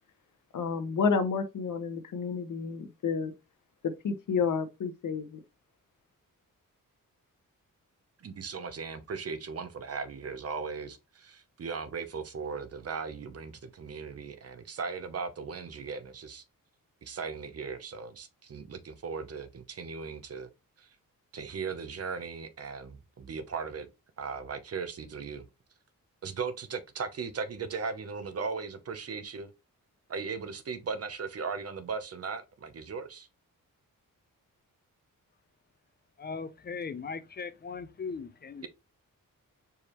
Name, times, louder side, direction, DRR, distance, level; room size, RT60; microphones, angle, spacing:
voice 1, 0.5-3.3 4.0-5.4, left 5 dB, 65° left, 0.9 m, -30 dB
voice 2, 8.2-16.4 17.0-20.5 20.8-21.0 21.3-23.9 24.2-25.5 26.2-29.5 30.1-33.3, right 5 dB, 45° right, 0.7 m, -37 dB
voice 3, 36.2-38.7, left 5 dB, 30° left, 0.5 m, -38 dB
4.6 x 3.3 x 3.0 m
wide cardioid pair, 115°, 34 cm